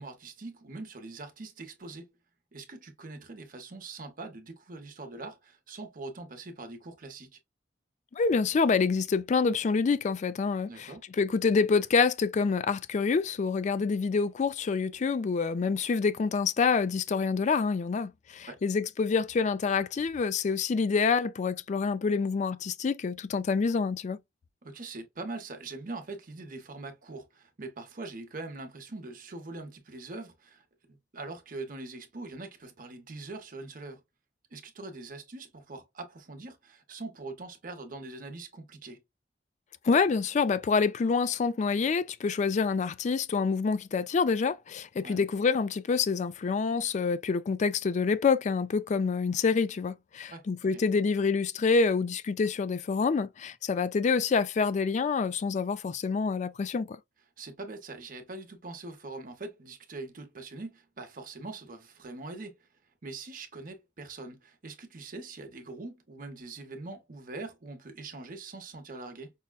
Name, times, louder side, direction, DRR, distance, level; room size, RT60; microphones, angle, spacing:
voice 1, 0.0-2.1 2.5-7.4 10.7-11.0 13.8-13.9 18.5-18.6 24.6-34.0 34.5-39.0 45.0-45.2 50.3-50.8 57.4-62.7 63.0-69.3, right 3 dB, 50° right, 0.9 m, -43 dB
voice 2, 8.1-10.9 11.2-24.2 39.8-57.0, left 5 dB, 40° left, 0.3 m, -27 dB
5.4 x 2.1 x 2.2 m
head